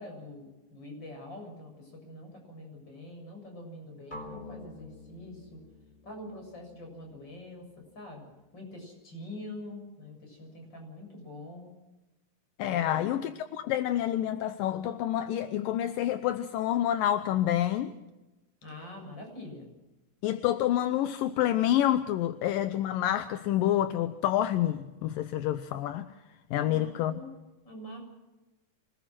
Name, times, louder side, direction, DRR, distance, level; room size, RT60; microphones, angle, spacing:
voice 1, 0.0-5.6 6.0-11.7 12.7-13.0 18.6-19.7 26.6-27.3 27.6-28.0, left 1 dB, 30° left, 7.9 m, -45 dB
sound 1, 4.1-8.1, left 1 dB, 15° left, 4.4 m, -48 dB
voice 2, 12.6-17.9 20.2-26.1 26.5-27.1, left 12 dB, 80° left, 2.5 m, -28 dB
26.0 x 20.0 x 6.1 m
omnidirectional pair, 4.0 m